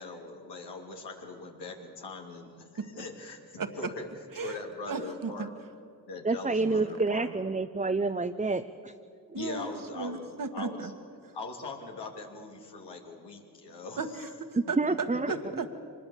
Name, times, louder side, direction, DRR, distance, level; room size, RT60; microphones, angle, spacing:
voice 1, 0.0-4.1 4.3-5.5 6.1-7.3 9.3-10.9 11.3-14.2 14.9-15.5, left 3 dB, 85° left, 0 dB, 3.0 m, -41 dB
voice 2, 3.6-3.9 4.4-4.6 4.9-5.5 6.6-7.0 9.3-10.9 14.0-15.7, right 4 dB, 55° right, 7 dB, 1.8 m, -35 dB
voice 3, 6.2-8.9 14.8-15.6, right 3 dB, 20° right, 7 dB, 0.8 m, -29 dB
24.5 x 20.5 x 7.5 m, 2.3 s
cardioid pair, 45°, 40 cm